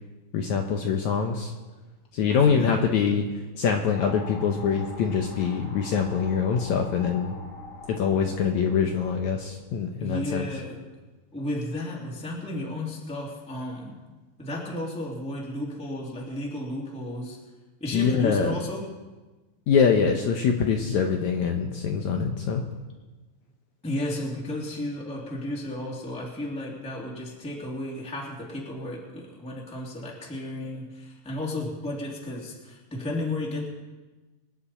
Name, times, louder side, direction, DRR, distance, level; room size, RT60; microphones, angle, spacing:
voice 1, 0.3-1.5 2.1-3.2 3.6-7.4 8.0-10.4 17.9-18.6 19.7-22.6, left 6 dB, 70° left, 3 dB, 1.8 m, -24 dB
voice 2, 2.3-2.8 10.0-10.9 11.3-14.0 14.4-17.4 17.8-18.9 23.8-33.7, left 1 dB, ahead, -3 dB, 2.0 m, -33 dB
sound 1, 3.9-10.4, left 2 dB, 25° left, 2.0 m, -44 dB
25.0 x 9.4 x 4.3 m, 1.2 s
omnidirectional pair, 4.3 m